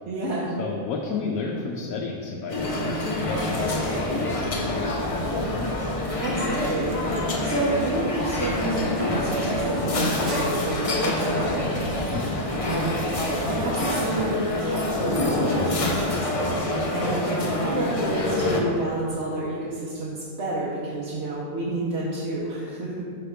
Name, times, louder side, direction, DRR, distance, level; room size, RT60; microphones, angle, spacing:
voice 1, 0.1-0.5 6.2-11.7 12.0-12.2 12.6-13.1 13.5-23.0, right 2 dB, 55° right, -6 dB, 1.0 m, -30 dB
voice 2, 0.6-5.8 12.1-12.5 16.8-17.1, left 4 dB, 85° left, 0 dB, 1.0 m, -33 dB
sound 1, 2.5-18.6, left 1 dB, 55° left, 0.3 m, -26 dB
sound 2, 10.3-15.2, right 3 dB, 70° right, 1.2 m, -43 dB
5.8 x 3.3 x 5.6 m, 2.3 s
omnidirectional pair, 1.5 m